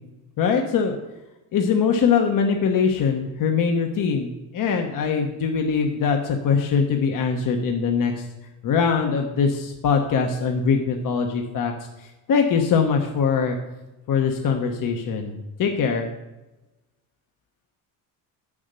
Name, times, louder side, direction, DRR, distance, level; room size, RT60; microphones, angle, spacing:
voice 1, 0.4-1.0 1.5-8.2 8.6-11.7 12.3-13.6 14.1-16.1, left 6 dB, 55° left, 3 dB, 1.1 m, -22 dB
7.9 x 7.2 x 6.8 m, 1.0 s
cardioid pair, 115°, 40 cm